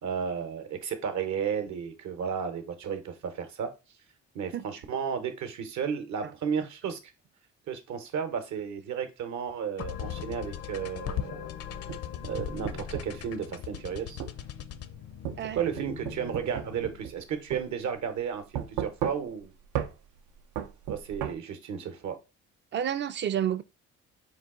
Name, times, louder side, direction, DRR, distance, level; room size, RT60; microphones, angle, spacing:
voice 1, 0.0-3.7 4.3-7.0 7.7-11.5 12.2-14.2 15.5-19.5 20.9-22.2, right 7 dB, 70° right, 0.9 m, -33 dB
sound 1, 9.8-17.1, left 9 dB, 55° left, 0.5 m, -39 dB
sound 2, 11.7-13.2 14.2-14.4 15.2-17.2 17.5-17.6 18.5-19.4 19.7-19.9 20.6-21.3, right 10 dB, 85° right, 0.6 m, -34 dB
voice 2, 22.7-23.6, right 9 dB, 40° right, 0.4 m, -29 dB
4.8 x 2.3 x 3.7 m
cardioid pair, 90°, 30 cm